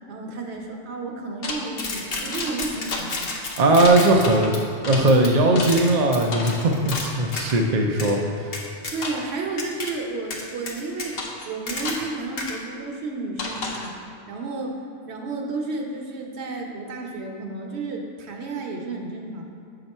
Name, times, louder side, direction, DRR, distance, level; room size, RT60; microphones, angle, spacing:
voice 1, 0.1-3.3 8.9-13.9 14.3-19.4, right 3 dB, 70° right, 1 dB, 1.0 m, -32 dB
sound 1, 1.4-7.6 8.0-8.1 8.5-9.3 9.6-9.9 10.3-12.1 12.4-12.5 13.4-13.9, left 3 dB, 60° left, 0.9 m, -30 dB
voice 2, 3.6-4.5 4.8-8.5, right 2 dB, 50° right, 2 dB, 0.5 m, -19 dB
7.0 x 2.9 x 5.3 m, 2.4 s
omnidirectional pair, 1.2 m